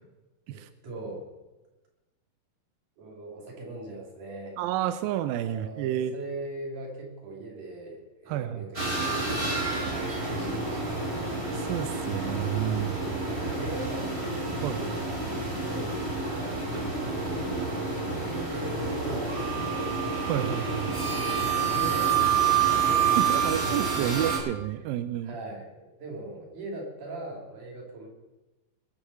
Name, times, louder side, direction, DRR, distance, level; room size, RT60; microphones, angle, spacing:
voice 1, 0.5-1.3 3.0-4.6 5.0-11.3 13.3-16.6 17.0-17.5 18.2-20.4 21.5-23.1 23.5-24.3 25.2-28.1, right 2 dB, 55° right, -1 dB, 4.4 m, -41 dB
voice 2, 4.6-6.1 8.3-8.7 11.5-13.0 14.6-14.8 20.2-20.9 23.2-25.4, right 12 dB, 80° right, 12 dB, 2.1 m, -30 dB
sound 1, 8.7-24.4, right 5 dB, 15° right, 3.3 m, -28 dB
21.0 x 7.1 x 7.0 m, 1.1 s
omnidirectional pair, 4.6 m